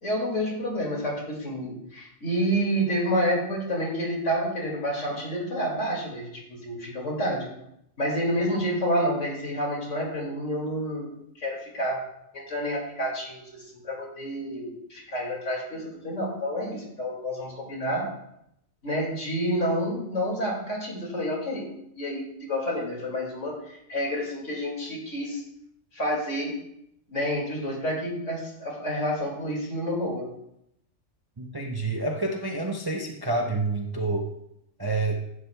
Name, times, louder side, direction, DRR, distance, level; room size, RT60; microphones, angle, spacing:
voice 1, 0.0-7.5 8.0-11.1 11.4-12.0 12.3-18.1 18.8-21.7 22.0-25.4 25.9-26.5 27.1-30.3, equal, 65° left, -3 dB, 2.7 m, -29 dB
voice 2, 31.4-34.2 34.8-35.2, right 2 dB, 25° right, 0 dB, 0.5 m, -28 dB
11.0 x 8.1 x 2.3 m, 0.77 s
omnidirectional pair, 1.4 m